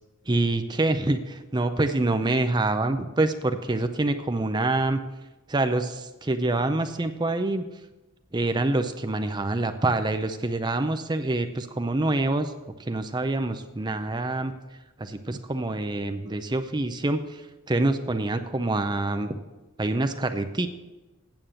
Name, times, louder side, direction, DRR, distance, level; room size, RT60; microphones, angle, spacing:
voice 1, 0.3-5.0 5.5-7.6 8.3-12.5 12.8-14.5 15.0-17.4 17.7-19.3 19.8-20.7, right 2 dB, 20° right, 8 dB, 0.5 m, -26 dB
8.9 x 7.4 x 6.3 m, 1.1 s
head